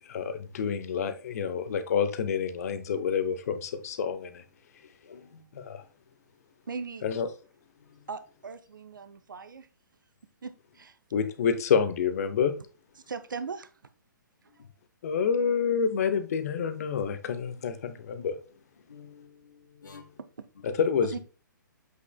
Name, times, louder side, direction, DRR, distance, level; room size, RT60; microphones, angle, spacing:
voice 1, 0.0-4.4 5.5-5.8 7.0-7.3 11.1-12.5 15.0-18.4 20.6-21.2, left 6 dB, 50° left, 0.8 m, -28 dB
voice 2, 5.0-5.4 7.9-8.0 14.5-14.6 18.8-20.1 20.6-20.8, left 5 dB, 70° left, 1.3 m, -51 dB
voice 3, 6.7-7.0 8.1-9.7 10.4-11.0 13.1-13.7 20.4-20.5 21.1-21.2, right 5 dB, 75° right, 0.6 m, -39 dB
7.7 x 5.8 x 2.2 m
figure-of-eight pair, 125°, 11 cm